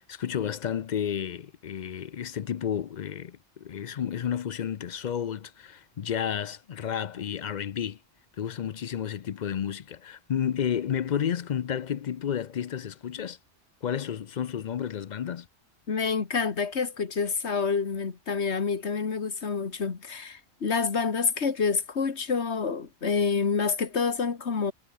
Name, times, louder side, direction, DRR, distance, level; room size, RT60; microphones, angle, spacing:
voice 1, 0.0-8.0 8.4-13.4 13.8-15.5, left 9 dB, 50° left, 0.6 m, -31 dB
voice 2, 15.9-24.7, left 5 dB, 80° left, 2.1 m, -28 dB
omnidirectional pair, 1.1 m